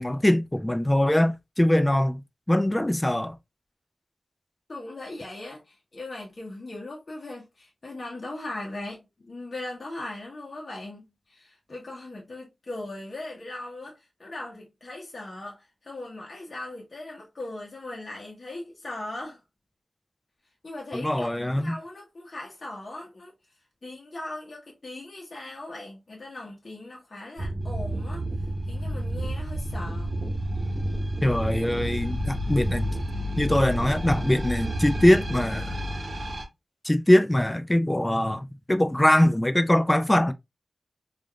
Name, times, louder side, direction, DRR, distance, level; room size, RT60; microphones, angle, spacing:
voice 1, 0.0-2.2 2.5-3.4 20.9-21.8 31.2-33.0 33.4-35.8 36.8-40.3, left 1 dB, 15° left, 0.4 m, -22 dB
voice 2, 4.7-19.4 20.6-23.3 23.8-28.3 28.7-30.1, left 2 dB, 55° left, 0.9 m, -39 dB
sound 1, 27.4-36.4, equal, 60° right, 0.8 m, -30 dB
3.4 x 2.5 x 2.2 m
cardioid pair, 60°, 0 cm